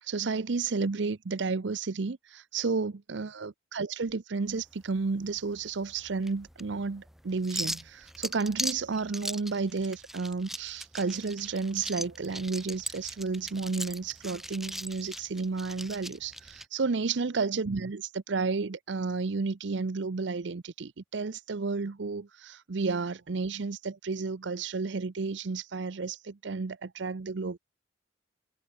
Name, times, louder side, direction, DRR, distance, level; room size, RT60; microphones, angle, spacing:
voice 1, 0.0-27.6, right 4 dB, 65° right, 0.6 m, -32 dB
sound 1, 4.5-16.6, right 1 dB, ahead, 0.6 m, -40 dB
head